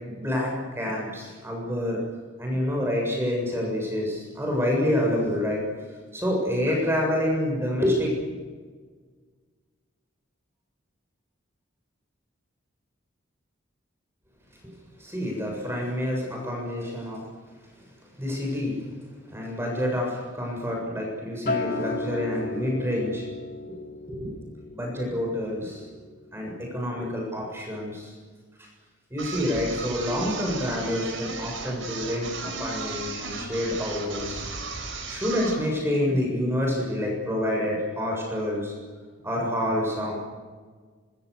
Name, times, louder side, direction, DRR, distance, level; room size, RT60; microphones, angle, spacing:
voice 1, 0.1-2.0 2.4-8.1 14.6-14.7 15.0-17.2 18.2-18.8 19.3-23.3 24.1-24.3 24.7-25.9 26.3-28.1 28.6-28.7 29.1-34.4 35.1-38.7 39.2-40.1, left 1 dB, 10° right, -1 dB, 7.3 m, -28 dB
Acoustic guitar, 21.5-25.9 26.3-26.7, left 3 dB, 50° left, 3.1 m, -34 dB
sound 1, 29.2-35.7, right 4 dB, 70° right, 5.7 m, -35 dB
26.0 x 25.5 x 6.7 m, 1.5 s
head